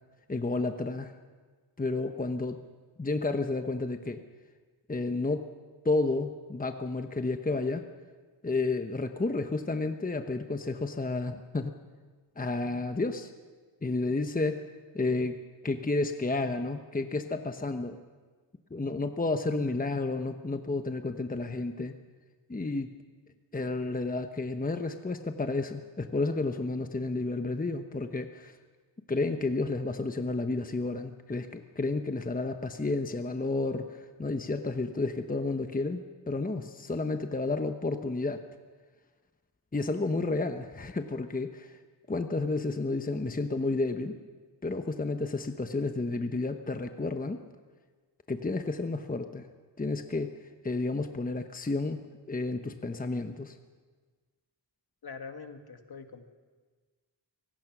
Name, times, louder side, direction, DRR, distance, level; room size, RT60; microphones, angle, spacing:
voice 1, 0.3-1.1 1.8-2.6 3.0-4.2 4.9-5.5 5.8-7.8 8.4-11.8 12.4-13.3 13.8-14.6 14.9-15.4 15.6-18.0 18.7-21.9 22.5-22.9 23.5-28.6 29.1-38.4 39.7-41.8 42.1-44.2 44.6-47.4 48.3-49.5 49.8-50.3 50.6-53.5, left 3 dB, 20° left, 7 dB, 1.0 m, -31 dB
voice 2, 55.0-56.3, left 5 dB, 60° left, 6 dB, 1.9 m, -44 dB
24.5 x 18.0 x 6.1 m, 1.4 s
wide cardioid pair, 90°, 43 cm